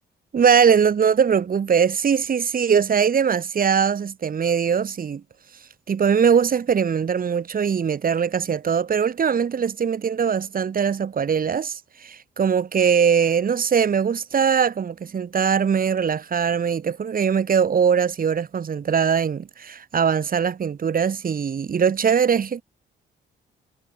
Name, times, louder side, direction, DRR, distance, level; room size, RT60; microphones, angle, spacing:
voice 1, 0.3-5.2 5.9-22.6, right 7 dB, 45° right, 3.6 m, -21 dB
cardioid pair, 90°, 20 cm